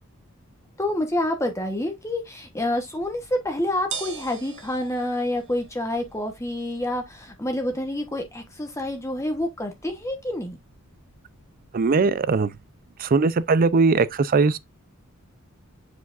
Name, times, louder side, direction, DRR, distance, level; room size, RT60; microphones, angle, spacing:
voice 1, 0.8-10.6, left 1 dB, 15° left, 1.0 m, -28 dB
sound 1, 2.8-12.8, right 6 dB, 60° right, 1.4 m, -45 dB
voice 2, 11.7-12.5 13.0-14.6, right 4 dB, 40° right, 0.4 m, -20 dB
8.2 x 4.7 x 2.4 m
head